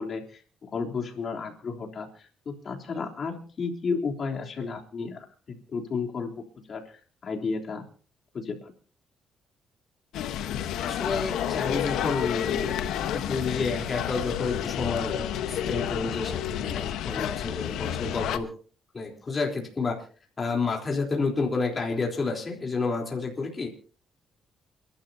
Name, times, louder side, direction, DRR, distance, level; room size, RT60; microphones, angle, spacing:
voice 1, 0.0-7.8 8.3-8.7 17.1-17.3, left 4 dB, 50° left, 1 dB, 3.4 m, -33 dB
sound 1, 10.1-18.4, left 10 dB, 85° left, 1.2 m, -30 dB
voice 2, 10.8-12.7 13.1-18.5 18.9-20.0 20.4-23.7, left 4 dB, 35° left, -1 dB, 3.8 m, -30 dB
29.0 x 12.0 x 2.8 m, 0.41 s
cardioid pair, 90°, 0 cm